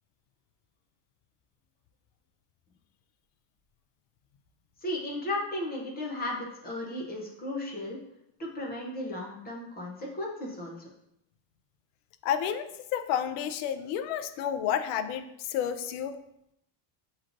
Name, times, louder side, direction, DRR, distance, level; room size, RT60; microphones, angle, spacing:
voice 1, 4.8-8.0 8.4-10.9, left 1 dB, 20° left, -2 dB, 0.5 m, -35 dB
voice 2, 12.2-16.1, left 9 dB, 75° left, 9 dB, 0.6 m, -30 dB
6.4 x 3.1 x 2.5 m, 0.80 s
cardioid pair, 170°, 50 cm